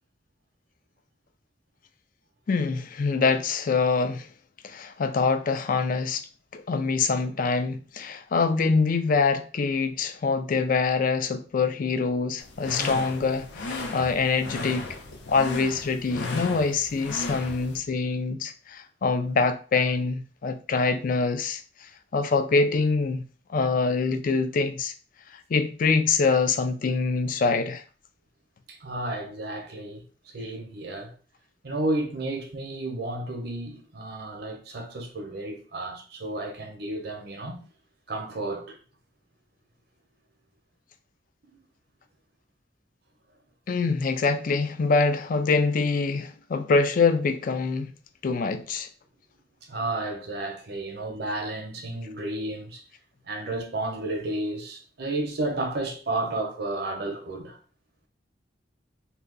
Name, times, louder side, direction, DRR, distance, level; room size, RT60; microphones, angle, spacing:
voice 1, 2.5-4.3 4.6-6.3 6.5-15.0 15.3-23.2 23.5-24.9 25.5-27.8 43.7-47.9 48.2-48.9, left 4 dB, 50° left, 0.4 m, -25 dB
sound 1, 12.4-17.8, left 3 dB, 85° left, 0.7 m, -35 dB
voice 2, 28.7-30.0 30.3-31.1 31.6-37.6 38.1-38.8 41.4-41.6 49.6-52.8 53.2-57.6, right 2 dB, 60° right, 0.7 m, -32 dB
2.8 x 2.2 x 3.7 m
head